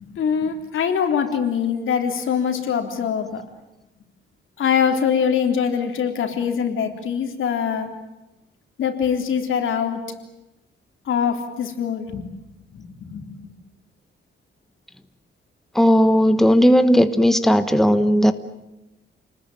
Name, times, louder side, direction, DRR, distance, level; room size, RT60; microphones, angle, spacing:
voice 1, 0.0-3.4 4.6-7.9 8.8-10.1 11.1-12.2 12.7-13.5, left 7 dB, 90° left, 5 dB, 3.7 m, -23 dB
voice 2, 15.7-18.3, equal, ahead, 10 dB, 1.2 m, -16 dB
29.5 x 20.5 x 9.2 m, 0.98 s
wide cardioid pair, 155°, 20 cm